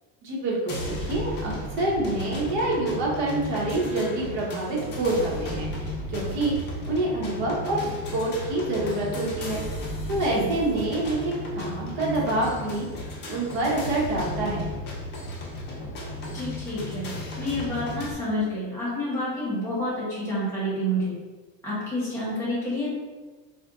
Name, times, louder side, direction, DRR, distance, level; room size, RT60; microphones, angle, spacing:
voice 1, 0.2-6.6 6.9-7.9 8.1-9.6 10.1-12.9 13.3-14.6, right 2 dB, 70° right, -4 dB, 1.1 m, -27 dB
sound 1, 0.7-18.1, left 1 dB, 30° left, 0.6 m, -34 dB
voice 2, 16.3-17.1 17.4-21.2 21.6-22.9, equal, 10° left, -8 dB, 0.9 m, -29 dB
4.2 x 2.2 x 2.4 m, 1.3 s
cardioid pair, 175°, 35 cm